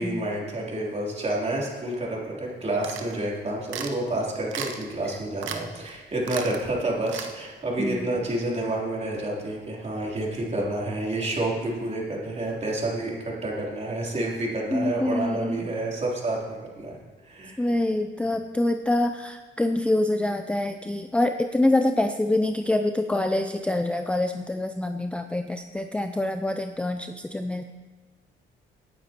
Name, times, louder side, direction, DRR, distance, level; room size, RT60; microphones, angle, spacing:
voice 1, 0.0-17.0 17.2-17.7, right 1 dB, 35° right, -3 dB, 3.3 m, -29 dB
sound 1, 2.8-3.2 3.7-4.0 4.5-4.9 5.4-5.6 5.9-6.0 6.2-6.6 7.1-7.3, right 7 dB, 75° right, 1.0 m, -34 dB
voice 2, 14.7-15.7 17.6-27.6, left 1 dB, 5° left, 6 dB, 0.4 m, -26 dB
18.5 x 9.2 x 2.9 m, 1.3 s
cardioid pair, 90°, 20 cm